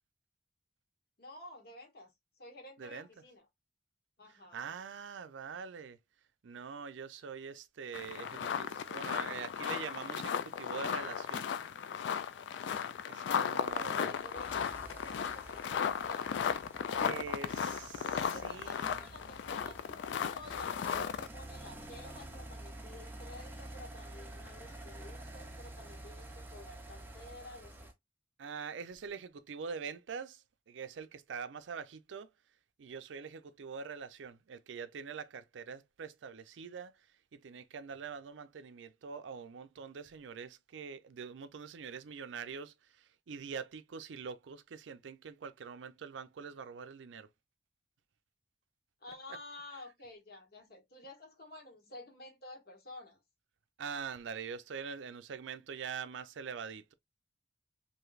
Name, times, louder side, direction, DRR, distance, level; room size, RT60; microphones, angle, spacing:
voice 1, 1.2-2.1 2.4-3.4 4.2-4.8 13.7-16.3 18.0-27.9 49.0-53.2, left 1 dB, 55° left, 1.1 m, -51 dB
voice 2, 4.5-6.0 6.4-11.5 13.1-14.1 16.9-18.1 18.4-19.0 28.4-32.3 32.8-37.1 37.3-47.3 53.8-56.9, right 6 dB, 90° right, 0.4 m, -44 dB
sound 1, 7.9-21.3, left 7 dB, 75° left, 0.3 m, -36 dB
sound 2, 13.2-27.9, right 1 dB, 10° right, 0.5 m, -49 dB
3.1 x 2.6 x 2.4 m
head